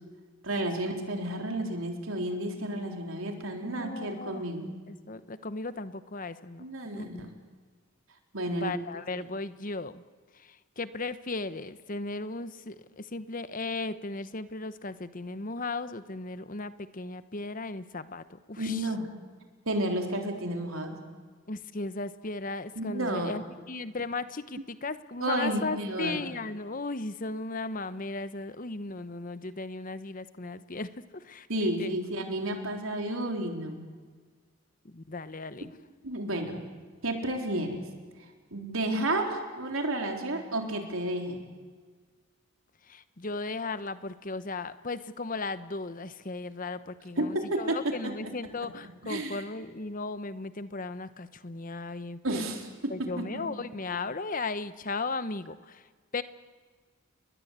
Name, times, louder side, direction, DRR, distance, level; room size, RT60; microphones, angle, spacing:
voice 1, 0.4-4.8 6.6-7.3 8.3-8.7 18.6-19.0 19.7-21.0 22.8-23.3 25.2-26.2 31.5-33.8 36.0-36.6 37.0-37.8 38.5-41.4 47.2-48.1 49.0-49.4 52.2-53.4, right 1 dB, 80° right, 3 dB, 3.9 m, -31 dB
voice 2, 3.6-4.5 4.9-6.6 6.9-7.3 8.5-10.0 10.3-18.9 21.5-31.9 34.8-35.7 42.8-52.4 52.9-56.2, left 3 dB, 40° left, 13 dB, 1.0 m, -36 dB
30.0 x 21.5 x 8.2 m, 1.5 s
head